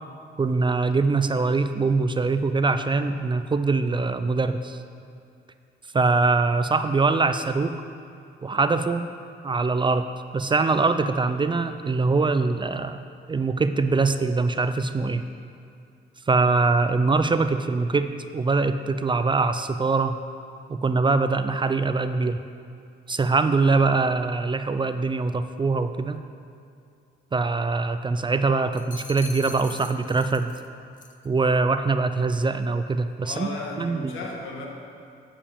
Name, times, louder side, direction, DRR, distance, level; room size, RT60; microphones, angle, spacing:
voice 1, 0.4-4.8 5.9-7.8 8.4-9.1 9.4-13.0 13.3-15.2 16.3-20.2 20.7-22.4 23.1-26.2 27.3-30.5 31.2-33.5 33.8-34.1, right 3 dB, 25° right, 10 dB, 0.4 m, -23 dB
sound 1, 28.7-30.7 31.0-31.3, left 5 dB, 40° left, 0.7 m, -42 dB
voice 2, 33.2-34.7, left 2 dB, 80° left, 0 dB, 1.7 m, -34 dB
10.0 x 5.1 x 6.9 m, 2.4 s
cardioid pair, 90°, 20 cm